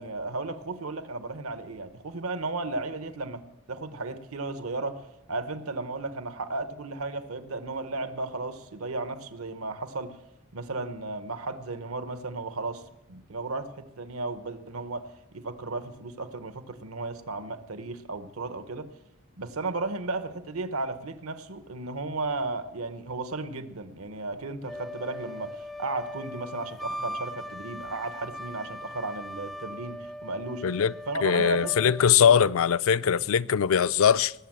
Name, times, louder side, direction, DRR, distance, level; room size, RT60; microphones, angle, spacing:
voice 1, 0.0-5.0 5.3-10.2 10.5-12.8 13.1-18.9 19.4-30.6 31.1-32.5, right 3 dB, 85° right, 1.0 m, -34 dB
Wind instrument woodwind instrument, 24.6-32.1, left 1 dB, ahead, 0.4 m, -39 dB
voice 2, 30.6-30.9 31.2-34.3, left 7 dB, 75° left, 0.4 m, -21 dB
19.5 x 7.3 x 7.6 m
head